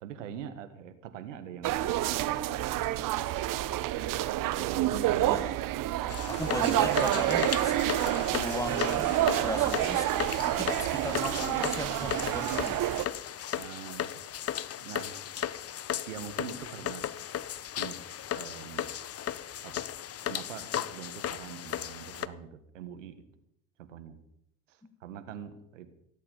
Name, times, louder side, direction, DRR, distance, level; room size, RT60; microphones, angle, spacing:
voice 1, 0.0-2.4 4.6-5.4 13.6-14.2 14.8-15.2 16.1-17.0 17.8-18.0 18.3-18.9 19.6-19.9 20.3-23.2 23.8-24.2 24.7-25.9, right 8 dB, 90° right, 10 dB, 1.6 m, -43 dB
sound 1, 1.6-13.0, right 14 dB, 60° right, 1.0 m, -28 dB
sound 2, 6.1-22.3, left 10 dB, 40° left, 0.9 m, -36 dB
voice 2, 6.3-7.8 8.1-9.1 9.4-10.1 10.4-12.8, left 2 dB, 10° left, 11 dB, 1.6 m, -37 dB
sound 3, 9.1-9.2 9.7-12.2 12.6-15.6, left 10 dB, 75° left, 2.9 m, -56 dB
17.0 x 8.6 x 6.9 m, 0.77 s
hypercardioid pair, 70°, 37 cm